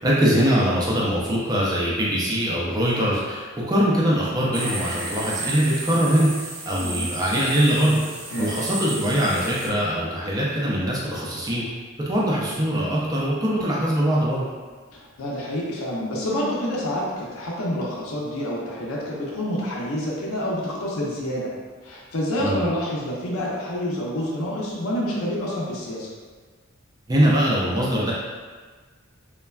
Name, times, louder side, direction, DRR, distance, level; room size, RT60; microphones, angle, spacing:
voice 1, 0.0-6.3 6.6-8.0 8.4-11.7 12.0-14.4 22.4-22.6 27.1-28.1, equal, 20° right, -6 dB, 0.4 m, -22 dB
sound 1, 4.5-9.7, right 3 dB, 80° right, 0.6 m, -33 dB
voice 2, 14.9-21.5 21.8-26.1, equal, 90° left, -5 dB, 0.6 m, -28 dB
3.2 x 2.1 x 2.3 m, 1.4 s
head